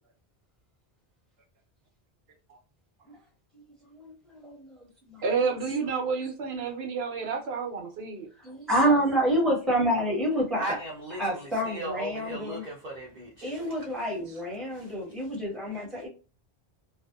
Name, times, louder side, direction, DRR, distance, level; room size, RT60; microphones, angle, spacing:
voice 1, 3.9-4.8 5.1-5.2 8.4-10.6 11.2-12.6 13.4-16.1, right 1 dB, ahead, 0.9 m, -28 dB
voice 2, 5.2-8.3, right 5 dB, 80° right, 0.9 m, -30 dB
voice 3, 10.5-14.1 14.7-15.0, right 1 dB, 50° right, 0.7 m, -38 dB
2.6 x 2.1 x 2.3 m
omnidirectional pair, 1.0 m